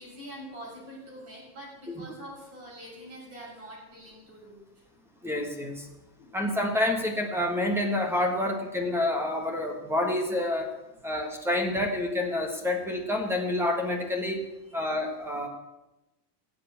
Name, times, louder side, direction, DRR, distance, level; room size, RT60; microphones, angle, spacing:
voice 1, 0.0-4.6 6.2-6.6 14.7-14.8, equal, 30° right, -3 dB, 6.8 m, -45 dB
voice 2, 5.2-5.9 6.3-10.7 11.0-14.5 14.7-15.5, left 1 dB, 5° right, 4 dB, 1.6 m, -28 dB
17.0 x 7.9 x 8.0 m, 1.0 s
supercardioid pair, 170°, 48 cm